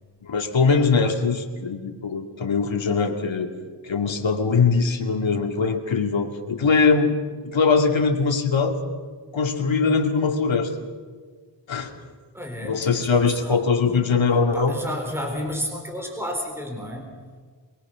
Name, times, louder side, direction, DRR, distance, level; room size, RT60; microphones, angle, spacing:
voice 1, 0.3-3.5 3.8-7.2 7.4-8.8 9.3-10.8 11.7-11.9 12.6-14.8, left 4 dB, 85° left, 3 dB, 2.6 m, -21 dB
voice 2, 12.3-14.1 14.5-17.1, equal, 5° right, 2 dB, 4.3 m, -32 dB
24.0 x 23.0 x 6.4 m, 1.5 s
wide cardioid pair, 115°, 45 cm